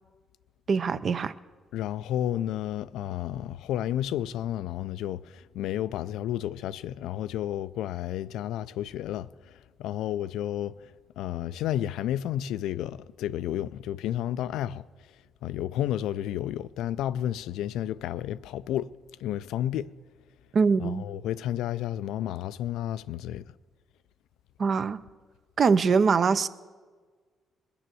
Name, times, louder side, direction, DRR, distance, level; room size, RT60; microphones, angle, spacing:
voice 1, 0.7-1.3 20.5-21.0 24.6-25.0 25.6-26.5, right 5 dB, 50° right, 0.5 m, -23 dB
voice 2, 1.7-9.3 9.8-10.7 11.2-14.8 15.4-18.9 19.2-19.9 20.8-23.4, left 11 dB, 90° left, 0.3 m, -31 dB
20.0 x 6.9 x 7.6 m
cardioid pair, 90°, 0 cm